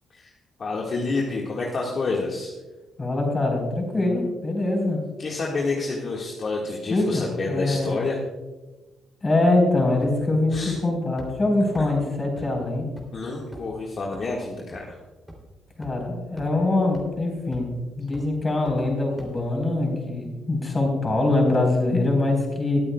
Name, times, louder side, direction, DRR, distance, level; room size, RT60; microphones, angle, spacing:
voice 1, 0.6-2.5 5.2-8.2 10.5-10.8 13.1-15.0, left 3 dB, 45° left, -2 dB, 1.7 m, -28 dB
voice 2, 3.0-5.0 6.9-7.9 9.2-12.8 15.8-22.8, left 2 dB, 25° left, 1 dB, 4.2 m, -23 dB
sound 1, 10.0-10.3 10.5-10.6 11.2-11.3 11.7-11.8 12.4-12.5 13.0-13.1 13.5-13.7 14.1-14.2 14.7-14.8 15.3-15.4 15.8-15.9 16.4-16.5 16.9-17.0 17.5-17.7 18.1-18.2 18.7-18.8 19.2-19.3, right 1 dB, 5° right, 3.0 m, -41 dB
22.0 x 8.7 x 2.3 m, 1.2 s
cardioid pair, 90°, 0 cm